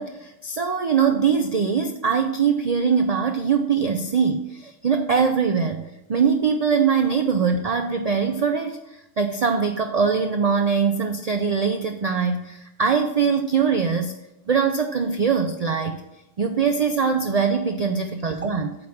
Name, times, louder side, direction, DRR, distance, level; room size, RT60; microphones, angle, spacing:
voice 1, 0.0-14.2 14.5-16.0 16.4-18.8, right 6 dB, 75° right, 5 dB, 0.3 m, -22 dB
8.8 x 3.6 x 6.2 m, 0.91 s
omnidirectional pair, 1.3 m